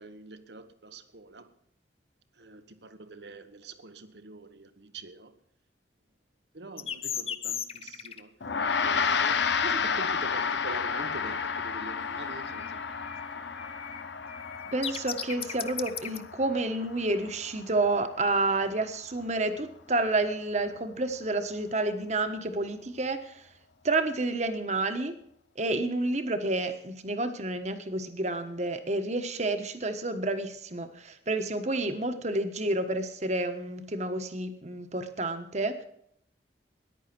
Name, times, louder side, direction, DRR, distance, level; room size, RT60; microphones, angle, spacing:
voice 1, 0.0-1.5 2.4-5.3 6.5-8.3 8.8-12.8 13.3-13.6, right 2 dB, 75° right, 1.2 m, -44 dB
sound 1, 6.8-8.2 12.5-12.7 13.0-16.2, left 8 dB, 35° left, 0.7 m, -36 dB
Gong, 8.4-18.0, left 6 dB, 85° left, 0.9 m, -31 dB
voice 2, 14.7-23.3 23.8-25.1 25.6-35.8, right 2 dB, 40° right, 1.3 m, -29 dB
14.0 x 10.5 x 6.0 m
head